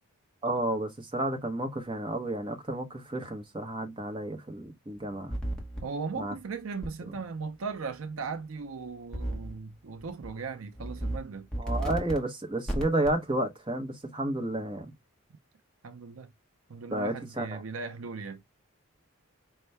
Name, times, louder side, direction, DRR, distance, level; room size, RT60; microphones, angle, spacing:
voice 1, 0.4-5.3 6.2-6.3 11.6-14.9 16.9-17.6, right 1 dB, 20° right, 0.8 m, -31 dB
sound 1, 5.3-5.8 6.8-6.9 9.1-9.6 10.0-10.3 10.8-11.2 11.5-12.2 12.7-13.1, right 1 dB, 5° left, 1.0 m, -32 dB
voice 2, 5.8-11.5 15.8-16.3 16.7-18.4, right 4 dB, 65° right, 0.5 m, -38 dB
5.4 x 2.2 x 3.3 m
head